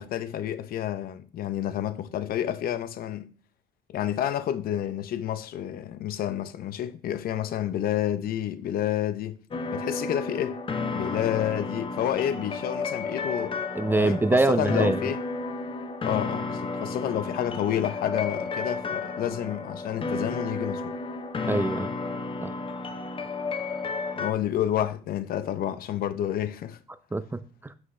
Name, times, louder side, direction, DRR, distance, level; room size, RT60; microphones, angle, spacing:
voice 1, 0.0-3.3 3.9-9.4 9.7-10.6 10.9-13.6 14.0-15.2 16.0-21.0 24.2-26.8, left 11 dB, 60° left, 0.7 m, -29 dB
sound 1, 9.5-24.3, left 3 dB, 30° left, 0.8 m, -32 dB
voice 2, 13.7-15.0 21.5-21.9 22.4-22.6 27.1-27.7, right 2 dB, 10° right, 0.5 m, -24 dB
7.4 x 6.2 x 3.2 m
cardioid pair, 110°, 17 cm